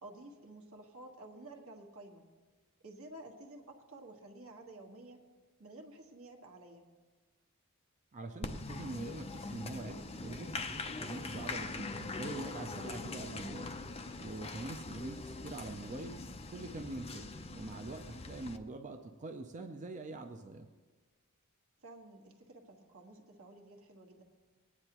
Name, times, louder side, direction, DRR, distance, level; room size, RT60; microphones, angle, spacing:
voice 1, 0.0-2.3 2.8-5.2 5.6-6.8 14.3-14.6 21.8-24.2, right 2 dB, 65° right, 1 dB, 1.5 m, -52 dB
voice 2, 8.1-13.7 14.2-16.2 16.5-20.7, right 2 dB, 35° right, 5 dB, 0.5 m, -44 dB
Applause, 8.4-18.6, left 3 dB, 25° left, 0.6 m, -42 dB
19.5 x 9.7 x 3.0 m, 1.4 s
head